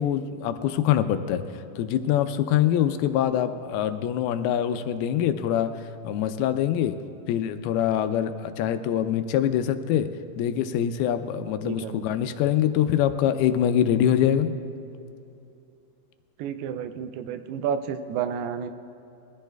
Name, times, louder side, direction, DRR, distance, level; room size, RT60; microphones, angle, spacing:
voice 1, 0.0-1.4 1.8-5.7 6.0-6.9 7.3-10.1 10.4-14.5, left 10 dB, 85° left, 9 dB, 2.5 m, -24 dB
voice 2, 11.6-12.1 16.4-18.7, right 8 dB, 85° right, 9 dB, 2.6 m, -31 dB
22.0 x 14.5 x 2.3 m, 2.7 s
omnidirectional pair, 4.5 m